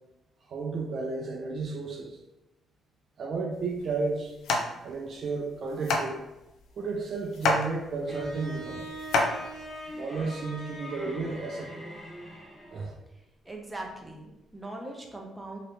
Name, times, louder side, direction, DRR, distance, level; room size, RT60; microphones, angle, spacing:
voice 1, 0.5-2.2 3.2-4.3 4.8-6.2 6.8-8.9 9.9-11.9 12.7-12.9, right 4 dB, 55° right, 2 dB, 0.4 m, -33 dB
sound 1, 3.5-10.0, left 3 dB, 75° left, 0.5 m, -31 dB
Bowed string instrument, 8.1-12.9, equal, 20° left, 0.9 m, -42 dB
voice 2, 13.1-15.6, right 2 dB, 10° right, 0 dB, 0.7 m, -41 dB
2.9 x 2.6 x 3.2 m, 0.96 s
cardioid pair, 90°, 0 cm